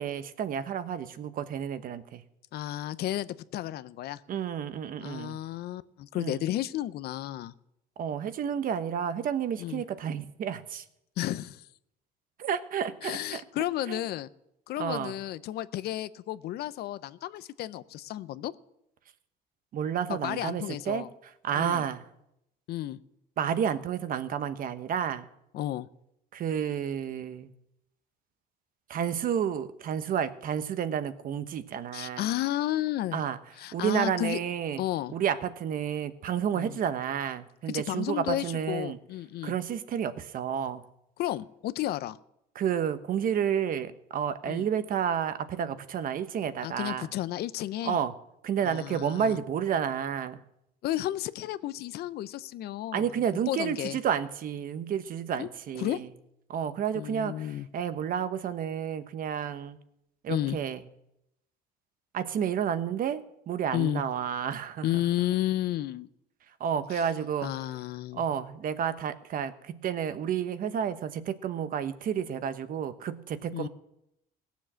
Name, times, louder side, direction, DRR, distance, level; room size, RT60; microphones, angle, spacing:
voice 1, 0.0-2.2 4.3-5.4 6.2-6.4 8.0-10.8 12.4-13.4 13.9-14.0 14.8-15.2 19.7-21.0 21.4-22.0 23.4-25.3 26.3-27.5 28.9-32.2 33.1-33.4 33.7-34.8 35.1-39.0 39.4-40.8 42.5-47.1 47.8-48.1 48.4-50.4 52.9-56.1 56.5-59.8 60.2-60.8 62.1-64.9 66.6-67.5 68.1-73.7, right 8 dB, 55° right, 12 dB, 1.1 m, -31 dB
voice 2, 2.5-4.2 5.0-7.5 9.6-9.8 11.2-11.6 13.0-14.3 14.7-18.5 20.1-21.1 21.6-21.9 22.7-23.0 25.5-25.9 31.9-33.2 33.6-34.4 34.8-35.1 36.5-36.8 37.7-39.6 41.2-42.2 44.5-44.7 46.6-48.0 48.6-49.4 50.8-53.1 53.5-54.0 55.4-55.5 55.8-56.0 56.9-57.7 60.3-60.6 63.7-64.0 64.8-66.1 66.9-67.0 67.4-68.2 73.5-73.7, left 13 dB, 70° left, 16 dB, 0.6 m, -32 dB
17.5 x 7.3 x 7.4 m, 0.80 s
cardioid pair, 110°, 17 cm